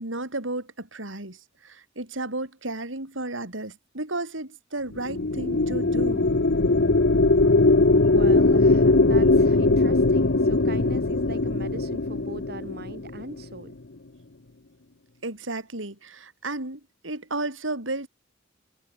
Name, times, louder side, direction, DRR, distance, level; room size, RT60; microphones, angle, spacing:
voice 1, 0.0-6.2 15.2-18.1, right 2 dB, 80° right, 5.1 m, -33 dB
sound 1, 4.9-13.5, left 2 dB, 60° left, 1.1 m, -20 dB
voice 2, 8.1-13.7, right 2 dB, 55° right, 4.8 m, -40 dB
head